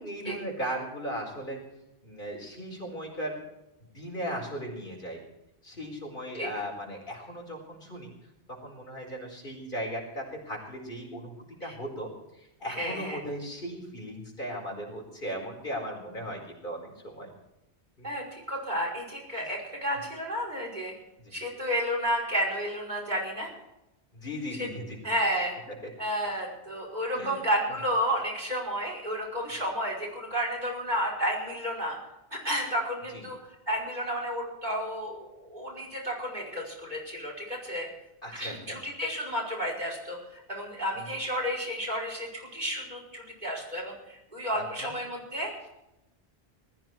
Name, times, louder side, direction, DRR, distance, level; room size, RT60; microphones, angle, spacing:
voice 1, 0.0-1.6 2.0-3.4 3.8-5.2 5.6-8.1 8.5-11.3 11.6-12.1 12.4-17.3 18.0-18.1 19.4-19.5 21.2-21.3 24.1-25.0 27.1-27.4 33.1-33.2 38.2-38.5 41.0-41.1 44.5-44.9, equal, 50° left, -1 dB, 4.8 m, -37 dB
voice 2, 12.7-13.2 18.0-20.9 21.3-23.5 25.0-25.5 26.0-32.0 32.3-33.4 33.7-37.9 38.3-45.5, equal, 40° right, -2 dB, 5.6 m, -31 dB
20.5 x 14.0 x 4.6 m, 0.91 s
omnidirectional pair, 1.1 m